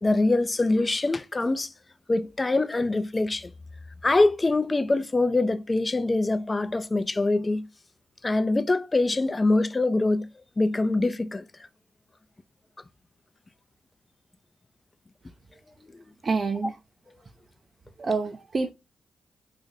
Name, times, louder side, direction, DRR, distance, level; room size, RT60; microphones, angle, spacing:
voice 1, 0.0-1.7 2.1-3.5 4.0-7.7 8.2-10.3 10.6-11.4, left 2 dB, 30° left, 0.4 m, -24 dB
voice 2, 16.2-16.8 18.0-18.7, right 4 dB, 45° right, 0.5 m, -27 dB
3.3 x 2.6 x 3.8 m
hypercardioid pair, 40°, 0 cm